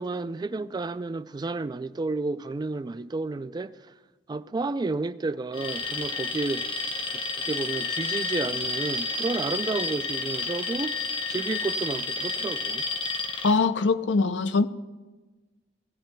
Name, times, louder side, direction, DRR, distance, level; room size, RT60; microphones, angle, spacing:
voice 1, 0.0-3.8 4.3-6.6 7.4-11.0 11.3-12.8, right 3 dB, 25° right, 0.3 m, -31 dB
Alarm, 5.5-13.5, left 3 dB, 30° left, 0.8 m, -30 dB
voice 2, 13.4-14.7, left 4 dB, 75° left, 0.5 m, -22 dB
16.0 x 15.5 x 2.3 m
head